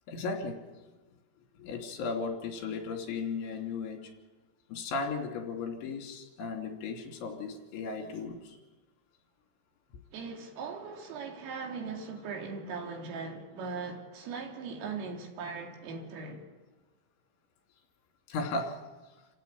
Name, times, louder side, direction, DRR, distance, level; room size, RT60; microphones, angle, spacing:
voice 1, 0.1-0.6 1.6-4.1 4.7-8.6 18.3-18.8, left 4 dB, 75° left, 5.0 m, -36 dB
voice 2, 10.1-16.5, right 4 dB, 90° right, 5.3 m, -39 dB
28.0 x 15.0 x 8.8 m
omnidirectional pair, 5.6 m